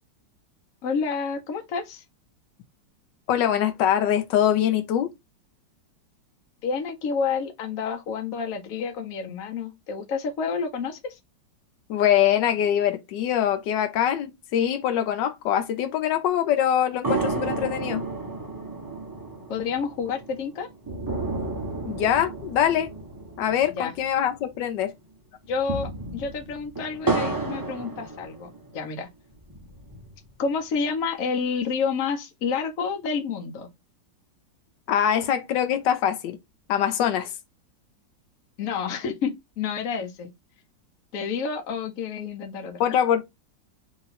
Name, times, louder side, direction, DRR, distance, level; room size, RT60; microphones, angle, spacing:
voice 1, 0.8-2.0 6.6-11.2 19.5-20.7 23.7-23.9 25.5-29.1 30.4-33.7 38.6-40.3 41.1-42.9, left 5 dB, 60° left, 1.1 m, -29 dB
voice 2, 3.3-5.1 11.9-18.0 21.8-22.9 23.4-24.9 34.9-36.4 36.7-37.3 42.8-43.3, left 10 dB, 80° left, 1.3 m, -23 dB
sound 1, 17.0-24.6 24.9-25.0 25.5-28.8 29.3-30.3, right 3 dB, 35° right, 0.3 m, -32 dB
3.1 x 2.9 x 4.0 m
omnidirectional pair, 1.9 m